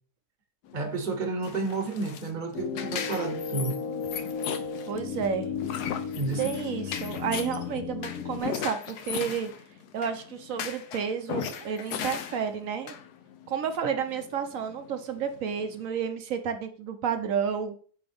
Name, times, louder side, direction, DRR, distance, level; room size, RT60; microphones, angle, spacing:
sound 1, 0.7-15.8, left 8 dB, 80° left, 1.2 m, -38 dB
voice 1, 0.7-3.8 6.1-6.6, right 3 dB, 35° right, 1.0 m, -31 dB
sound 2, 2.5-8.4, left 6 dB, 65° left, 0.9 m, -34 dB
voice 2, 4.9-5.5 6.4-9.5 9.9-12.9 13.5-17.7, right 7 dB, 65° right, 1.1 m, -31 dB
8.6 x 3.7 x 3.4 m
omnidirectional pair, 1.7 m